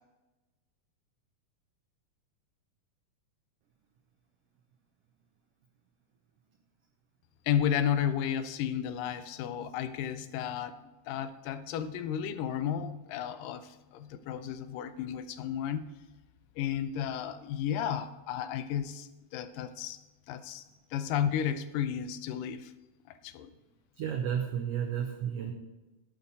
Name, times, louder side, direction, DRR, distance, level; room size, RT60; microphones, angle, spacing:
voice 1, 7.5-10.8 11.1-15.9 16.6-20.0 20.3-20.6 20.9-22.7 23.2-23.5, left 9 dB, 80° left, 11 dB, 2.3 m, -33 dB
voice 2, 24.0-25.5, right 8 dB, 85° right, 4 dB, 1.3 m, -32 dB
11.5 x 8.6 x 4.1 m, 1.1 s
omnidirectional pair, 3.9 m